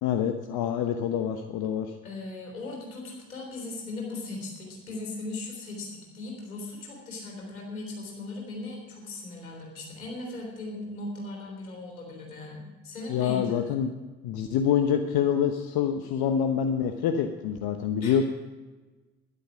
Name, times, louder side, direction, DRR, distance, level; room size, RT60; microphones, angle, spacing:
voice 1, 0.0-1.9 13.1-13.9 14.2-18.3, left 8 dB, 60° left, 7 dB, 1.1 m, -26 dB
voice 2, 2.0-13.6 18.0-18.2, left 2 dB, 85° left, -2 dB, 3.6 m, -38 dB
12.5 x 11.0 x 6.0 m, 1.2 s
hypercardioid pair, 50°, 41 cm